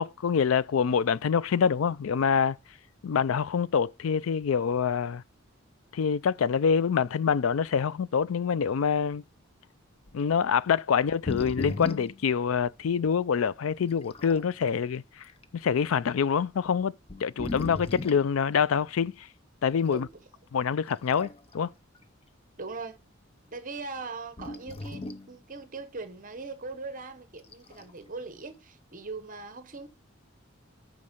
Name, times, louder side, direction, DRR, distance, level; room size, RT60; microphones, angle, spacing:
voice 1, 0.0-2.6 3.0-5.2 5.9-9.2 10.1-15.2 15.5-16.9 17.2-19.3 19.6-20.1 20.5-21.7, left 6 dB, 85° left, 0.4 m, -26 dB
sound 1, 10.1-10.2 11.1-12.2 13.1-13.2 13.9-14.5 15.2-15.4 16.3-16.4 17.0-18.3 19.9-20.1 20.9-21.6 21.9-22.0 24.4-25.3 27.4-27.9, left 2 dB, 30° left, 0.7 m, -37 dB
voice 2, 19.9-20.2 22.6-23.0 23.5-29.9, right 3 dB, 40° right, 0.9 m, -40 dB
8.6 x 5.2 x 5.2 m
head